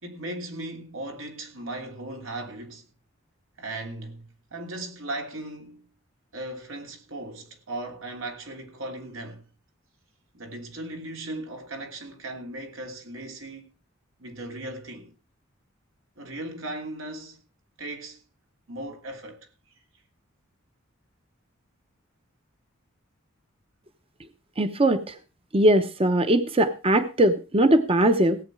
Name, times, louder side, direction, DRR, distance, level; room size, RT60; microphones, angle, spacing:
voice 1, 0.0-2.8 3.6-5.9 6.3-9.5 10.3-13.7 14.2-15.1 16.2-17.4 17.8-18.2 18.7-19.4, right 2 dB, 85° right, 3.0 m, -37 dB
voice 2, 24.6-25.1 25.5-28.4, right 1 dB, 30° right, 0.8 m, -20 dB
17.0 x 8.4 x 4.8 m
head